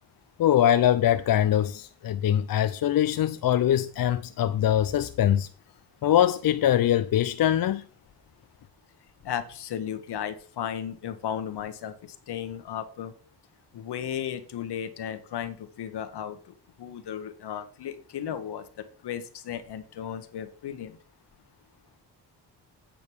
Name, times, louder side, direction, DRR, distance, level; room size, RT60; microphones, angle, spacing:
voice 1, 0.4-5.5 6.0-7.8, left 11 dB, 60° left, 0.6 m, -23 dB
voice 2, 9.2-11.9 12.3-13.1 13.7-16.4 16.8-18.6 19.0-21.0, left 9 dB, 75° left, 1.4 m, -34 dB
8.7 x 5.2 x 6.2 m
cardioid pair, 85°, 40 cm